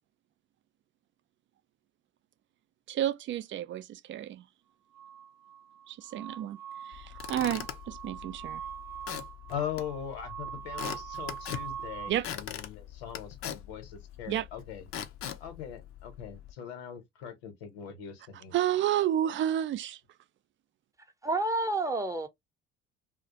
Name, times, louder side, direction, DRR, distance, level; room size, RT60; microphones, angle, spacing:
voice 1, 2.9-4.5 5.9-6.6 6.8-8.6 12.1-12.3 14.3-14.5 18.5-20.0, right 11 dB, 40° right, 0.4 m, -31 dB
sound 1, 4.9-12.1, right 9 dB, 90° right, 0.7 m, -43 dB
Squeak / Wood, 6.9-16.5, left 10 dB, 45° left, 0.5 m, -42 dB
voice 2, 9.5-14.9 15.4-18.5, left 8 dB, 80° left, 0.9 m, -40 dB
voice 3, 21.2-22.3, right 2 dB, 10° right, 0.7 m, -29 dB
2.3 x 2.1 x 2.8 m
hypercardioid pair, 65°, 31 cm